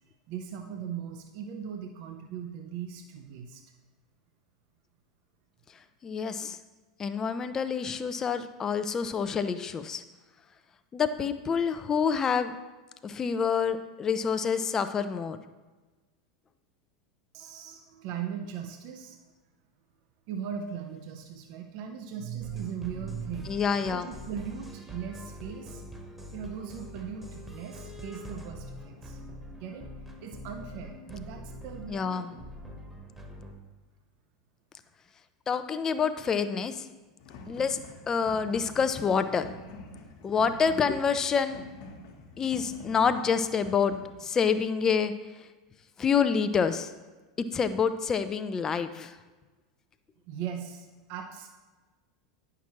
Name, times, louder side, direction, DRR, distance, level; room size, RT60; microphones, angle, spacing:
voice 1, 0.3-3.6 17.3-19.2 20.3-23.5 23.9-25.8 26.3-29.2 29.6-29.9 30.2-32.4 50.3-51.5, right 8 dB, 50° right, 5 dB, 0.7 m, -39 dB
voice 2, 6.0-6.6 7.0-10.0 10.9-12.5 13.0-15.4 23.5-24.1 31.9-32.3 35.5-36.8 37.5-37.8 38.1-39.5 40.2-41.6 42.4-43.9 44.2-45.1 46.0-46.9 47.5-49.1, left 6 dB, 25° left, 10 dB, 0.5 m, -27 dB
sound 1, 22.4-33.5, equal, 5° right, 1.2 m, -44 dB
sound 2, 37.2-44.1, left 2 dB, 55° left, 1.3 m, -47 dB
10.0 x 5.9 x 3.0 m, 1.3 s
figure-of-eight pair, 85°, 2 cm